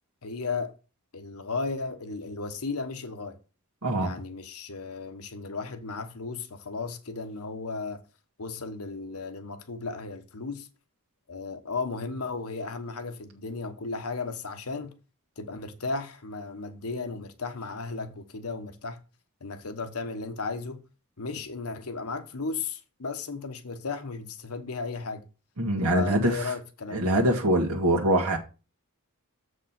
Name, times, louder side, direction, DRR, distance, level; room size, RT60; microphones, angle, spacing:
voice 1, 0.2-0.7 1.1-3.4 4.0-8.0 8.4-10.7 11.3-14.9 15.4-19.0 19.4-20.8 21.2-25.3 25.9-27.1, left 4 dB, 85° left, 1.2 m, -35 dB
voice 2, 3.8-4.1 25.6-26.4 26.9-28.4, right 1 dB, 80° right, 1.7 m, -23 dB
7.4 x 4.9 x 5.9 m
head